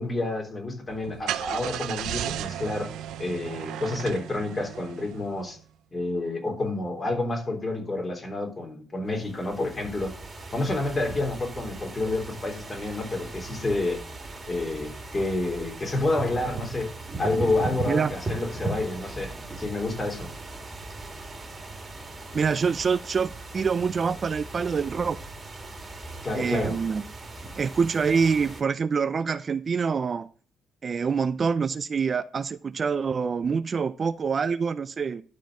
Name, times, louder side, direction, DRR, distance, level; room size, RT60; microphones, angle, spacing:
voice 1, 0.0-2.9 3.2-5.6 5.9-10.1 10.5-14.0 14.5-16.9 17.2-20.3 26.2-26.8, left 2 dB, 30° left, 3.4 m, -29 dB
Car / Engine starting, 0.9-5.5, right 11 dB, 85° right, 0.6 m, -35 dB
sound 1, 9.1-28.6, right 2 dB, 25° right, 2.4 m, -38 dB
voice 2, 22.3-25.2 26.3-27.0 27.6-30.3 30.8-35.2, right 5 dB, 40° right, 0.5 m, -26 dB
11.5 x 4.5 x 6.1 m
cardioid pair, 90°, 0 cm